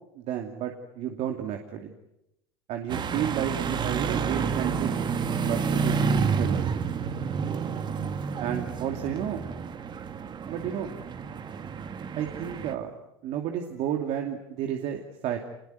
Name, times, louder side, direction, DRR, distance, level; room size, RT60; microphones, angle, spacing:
voice 1, 0.1-1.9 2.7-4.9 5.4-6.0 6.3-6.7 8.4-9.4 10.5-10.9 12.1-12.9 13.2-15.4, right 9 dB, 55° right, 4 dB, 2.7 m, -31 dB
sound 1, 2.9-12.7, right 6 dB, 35° right, 1.9 m, -29 dB
27.0 x 21.5 x 9.3 m, 0.85 s
hypercardioid pair, 85°, 13 cm